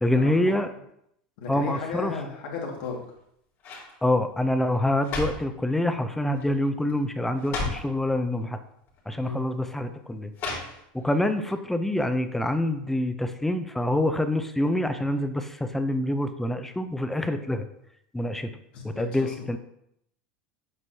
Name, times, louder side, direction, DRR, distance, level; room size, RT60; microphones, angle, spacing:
voice 1, 0.0-0.7 1.5-2.1 4.0-8.6 9.1-10.3 10.9-17.7 18.1-18.5 18.8-19.6, left 1 dB, 5° left, 9 dB, 0.6 m, -26 dB
voice 2, 1.4-3.0 9.2-9.4 18.7-19.6, left 4 dB, 70° left, 0 dB, 2.0 m, -35 dB
sound 1, 2.7-3.2 3.6-3.9 4.7-5.6 6.4-6.6 6.9-7.0 7.4-7.9 8.9-9.0 10.3-11.1 11.5-11.6, left 3 dB, 45° left, 2.5 m, -34 dB
7.7 x 6.0 x 2.8 m, 0.74 s
supercardioid pair, 110°, 5 cm